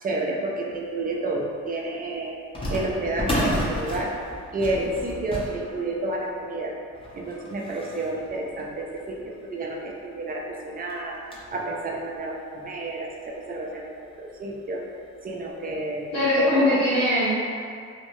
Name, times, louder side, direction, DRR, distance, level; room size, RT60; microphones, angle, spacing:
voice 1, 0.0-2.3 2.7-4.1 4.5-6.7 7.1-11.2 11.5-14.8 15.2-16.7, right 2 dB, 30° right, -1 dB, 0.5 m, -30 dB
sound 1, 1.1-1.2 2.5-9.5 10.1-10.2 10.4-10.5 10.9-11.6 12.1-12.2 13.1-13.2 13.5-13.7 15.0-15.3 15.7-15.8 16.4-16.6, equal, 15° left, 0.7 m, -33 dB
voice 2, 16.1-17.4, left 1 dB, 80° left, -15 dB, 1.3 m, -21 dB
2.7 x 2.1 x 3.1 m, 2.2 s
cardioid pair, 90°, 30 cm